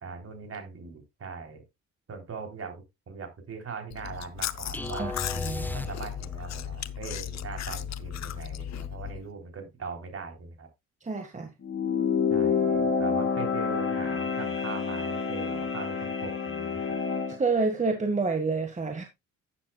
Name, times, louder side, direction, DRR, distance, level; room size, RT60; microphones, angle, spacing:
voice 1, 0.0-1.6 2.1-5.2 5.7-10.7 12.3-17.0, right 5 dB, 50° right, 3.7 m, -40 dB
Chewing mastication, 3.9-9.2, left 10 dB, 60° left, 0.8 m, -36 dB
sound 1, 4.7-6.5, left 2 dB, 5° left, 0.7 m, -35 dB
voice 2, 5.0-5.7 11.0-11.5 17.4-19.0, right 4 dB, 25° right, 1.8 m, -28 dB
sound 2, 11.6-17.4, left 5 dB, 45° left, 2.2 m, -28 dB
11.5 x 9.8 x 2.3 m
cardioid pair, 90°, 30 cm